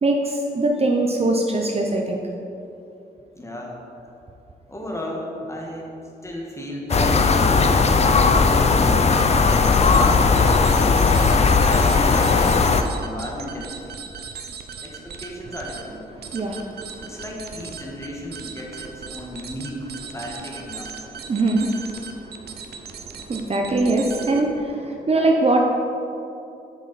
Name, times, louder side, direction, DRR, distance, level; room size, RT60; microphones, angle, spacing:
voice 1, 0.0-2.2 16.3-17.0 21.3-21.8 22.1-22.6 23.0-25.7, right 2 dB, 35° right, 1 dB, 0.8 m, -22 dB
voice 2, 3.3-3.8 4.7-9.2 9.7-10.5 11.4-14.0 14.8-16.0 17.0-21.0, equal, 15° left, -1 dB, 1.6 m, -34 dB
sound 1, 6.9-12.8, left 4 dB, 35° left, 0.5 m, -17 dB
sound 2, 9.2-24.6, right 6 dB, 65° right, 0.7 m, -38 dB
8.1 x 6.0 x 4.2 m, 2.7 s
cardioid pair, 70°, 18 cm